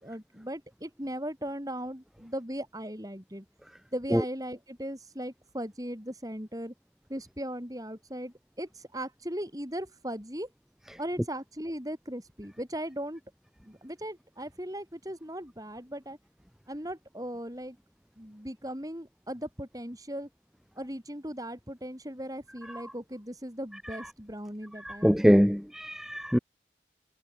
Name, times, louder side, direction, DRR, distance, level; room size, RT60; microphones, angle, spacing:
voice 1, 0.0-3.5 3.9-6.7 7.1-10.5 11.0-13.2 13.7-16.2 16.7-17.8 18.2-20.3 20.8-25.4, right 1 dB, 20° right, 7.2 m, -38 dB
voice 2, 24.8-26.4, equal, ahead, 0.7 m, -23 dB
head